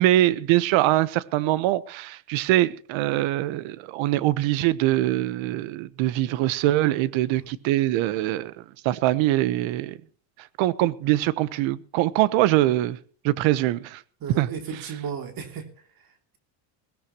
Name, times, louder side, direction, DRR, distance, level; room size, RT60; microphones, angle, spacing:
voice 1, 0.0-10.0 10.4-13.0 13.2-14.0 14.4-14.8, right 15 dB, 65° right, 1.1 m, -23 dB
voice 2, 14.2-15.6, right 7 dB, 45° right, 3.0 m, -34 dB
21.5 x 16.5 x 3.0 m
cardioid pair, 125°, 50 cm